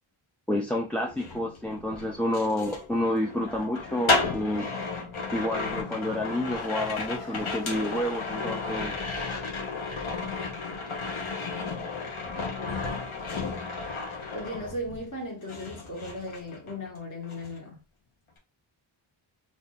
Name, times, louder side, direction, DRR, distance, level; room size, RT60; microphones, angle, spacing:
voice 1, 0.5-4.7 5.3-8.9, left 1 dB, 5° left, 0.4 m, -29 dB
sound 1, 1.0-15.2 15.5-17.0 17.2-17.6, left 3 dB, 70° left, 1.0 m, -33 dB
sound 2, 5.8-9.7 10.1-13.7, left 5 dB, 85° left, 0.7 m, -45 dB
voice 2, 12.3-13.0 14.3-17.8, left 1 dB, 35° left, 1.5 m, -37 dB
2.7 x 2.6 x 3.8 m
wide cardioid pair, 60°, 50 cm